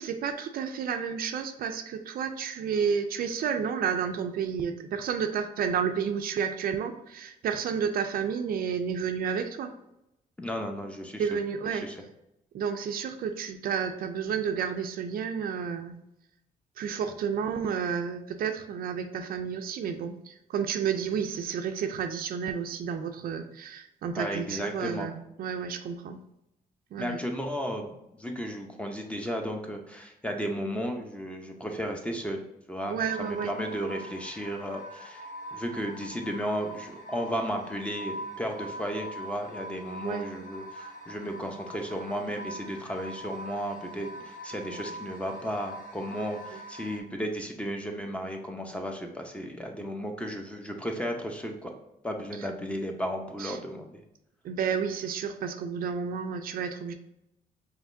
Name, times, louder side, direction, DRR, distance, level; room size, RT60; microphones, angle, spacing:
voice 1, 0.0-9.7 11.2-11.9 12.5-15.9 16.8-25.1 25.4-26.2 26.9-27.2 32.9-33.5 40.0-40.2 53.4-53.6 54.4-56.9, right 7 dB, 65° right, 7 dB, 0.4 m, -31 dB
voice 2, 10.4-11.4 11.8-12.0 24.2-25.1 27.0-32.4 32.7-51.7 52.0-53.9, equal, 5° left, 3 dB, 0.7 m, -34 dB
sound 1, 33.1-47.0, right 1 dB, 55° left, 0.9 m, -43 dB
4.9 x 3.1 x 2.6 m, 0.85 s
cardioid pair, 90°, 16 cm